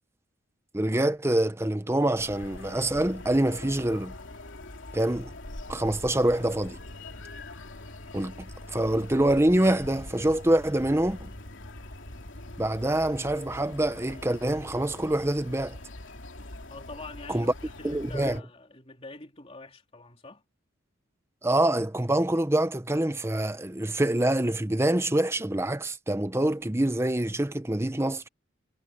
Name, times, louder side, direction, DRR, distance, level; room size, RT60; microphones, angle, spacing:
voice 1, 0.7-4.1 4.9-5.3 5.7-6.8 8.1-11.3 12.6-15.8 17.3-17.5 17.8-18.4 21.4-28.2, right 1 dB, 15° right, 0.8 m, -25 dB
sound 1, 2.1-18.4, left 2 dB, 80° left, 2.7 m, -43 dB
sound 2, 5.1-12.8, equal, 50° left, 7.0 m, -51 dB
voice 2, 16.7-20.4, left 2 dB, 30° left, 3.6 m, -45 dB
head